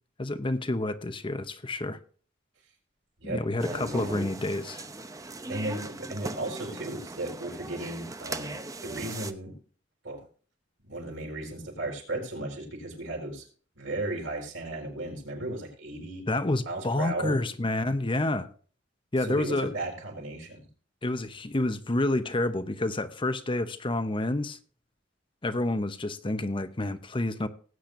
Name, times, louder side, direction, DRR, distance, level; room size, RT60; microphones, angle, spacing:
voice 1, 0.2-2.0 3.2-4.8 16.3-18.5 19.1-19.7 21.0-24.6 25.4-27.5, left 2 dB, 25° left, 0.8 m, -29 dB
voice 2, 3.2-4.2 5.5-8.5 8.8-9.5 10.0-10.2 10.8-13.4 13.8-16.2 16.7-17.4 19.2-20.7, right 2 dB, 85° right, 4.6 m, -35 dB
sound 1, 3.6-9.3, right 2 dB, 20° right, 0.7 m, -38 dB
19.0 x 8.6 x 2.6 m
head